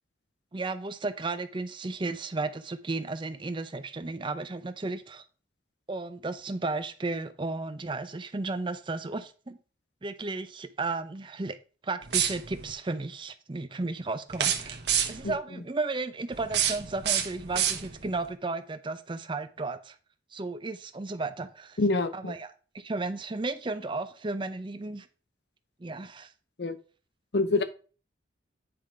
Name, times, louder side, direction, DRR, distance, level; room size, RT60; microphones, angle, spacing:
voice 1, 0.5-5.2 5.9-9.6 10.0-11.6 11.8-14.8 15.1-20.0 20.3-21.8 22.1-25.1 25.8-26.3, right 3 dB, 25° right, 0.5 m, -34 dB
sound 1, 12.0-12.7 14.3-15.4 16.3-18.2, right 9 dB, 65° right, 1.0 m, -29 dB
voice 2, 21.8-22.3 26.6-26.8 27.3-27.6, left 2 dB, 65° left, 0.8 m, -26 dB
9.5 x 3.8 x 4.4 m
head